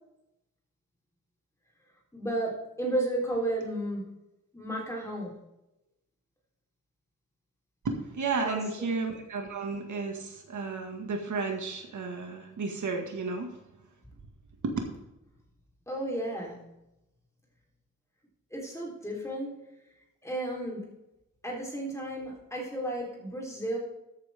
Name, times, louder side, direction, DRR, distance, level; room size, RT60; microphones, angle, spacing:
voice 1, 2.1-4.1 4.5-5.3 8.4-9.0 15.9-16.7 18.5-19.6 20.2-20.9 21.4-23.8, right 1 dB, 10° left, -2 dB, 3.6 m, -33 dB
voice 2, 7.8-13.6 14.6-14.8, right 4 dB, 70° right, 3 dB, 1.8 m, -33 dB
13.5 x 9.0 x 3.6 m, 0.90 s
wide cardioid pair, 155°, 31 cm